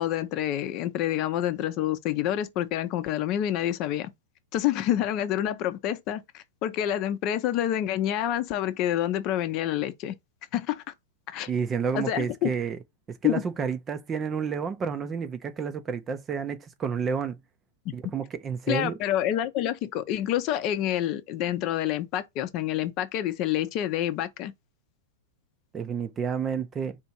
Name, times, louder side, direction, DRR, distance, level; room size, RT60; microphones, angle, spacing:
voice 1, 0.0-4.1 4.5-10.1 10.5-10.8 11.3-11.5 11.9-12.5 13.2-13.4 17.9-18.0 18.7-24.5, left 12 dB, 40° left, 0.7 m, -28 dB
voice 2, 11.5-12.8 13.1-17.4 17.9-19.0 25.7-27.0, right 6 dB, 25° right, 0.6 m, -30 dB
4.3 x 2.6 x 4.4 m
figure-of-eight pair, 100°, 0 cm